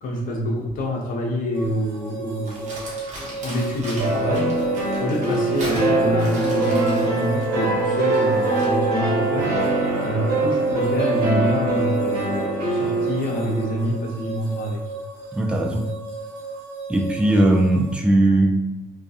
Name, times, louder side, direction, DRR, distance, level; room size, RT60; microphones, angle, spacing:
voice 1, 0.0-4.5 5.0-9.5 10.0-14.8, equal, 55° left, -1 dB, 0.7 m, -26 dB
sound 1, 1.5-17.9, right 3 dB, 85° right, 0.6 m, -35 dB
Crumpling crinkling, 2.4-8.8, right 1 dB, 45° right, 1.0 m, -38 dB
sound 2, 4.0-13.9, right 2 dB, 70° right, 0.9 m, -23 dB
voice 2, 15.3-15.9 16.9-18.7, right 1 dB, 5° right, 2 dB, 0.3 m, -19 dB
2.3 x 2.3 x 2.6 m, 1.1 s
cardioid pair, 110°, 17 cm